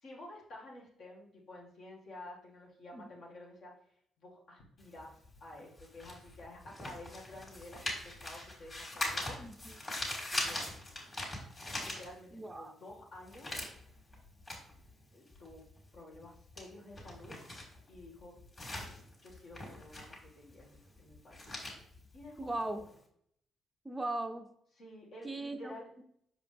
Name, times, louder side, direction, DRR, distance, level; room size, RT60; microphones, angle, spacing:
voice 1, 0.0-3.7 4.2-9.4 10.0-10.8 11.7-13.6 15.1-15.6 15.9-17.3 17.9-18.4 19.2-21.4 22.1-22.9 24.8-25.9, left 1 dB, 65° left, -2 dB, 2.1 m, -51 dB
sound 1, 4.8-12.6 12.9-23.0, left 1 dB, 35° left, 2.7 m, -42 dB
voice 2, 12.3-12.7 22.4-22.9 23.8-24.5 25.2-26.0, right 2 dB, 15° right, 7 dB, 0.5 m, -38 dB
6.1 x 4.9 x 3.4 m, 0.69 s
cardioid pair, 90°, 0 cm